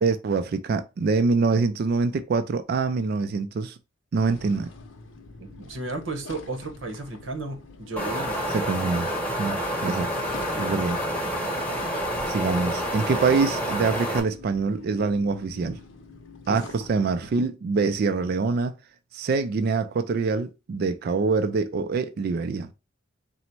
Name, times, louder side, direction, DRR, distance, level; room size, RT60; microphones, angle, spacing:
voice 1, 0.0-3.8 4.1-4.7 8.5-9.1 9.4-10.1 10.6-11.0 12.3-15.8 16.5-18.7 19.1-22.7, right 4 dB, 50° right, 0.3 m, -25 dB
sound 1, 4.2-17.3, left 3 dB, 75° left, 0.7 m, -45 dB
voice 2, 5.4-8.4 10.5-10.8 13.6-13.7 16.5-16.7, right 2 dB, 80° right, 1.0 m, -34 dB
Wind, 8.0-14.2, equal, 10° left, 0.9 m, -28 dB
4.0 x 2.1 x 4.3 m
head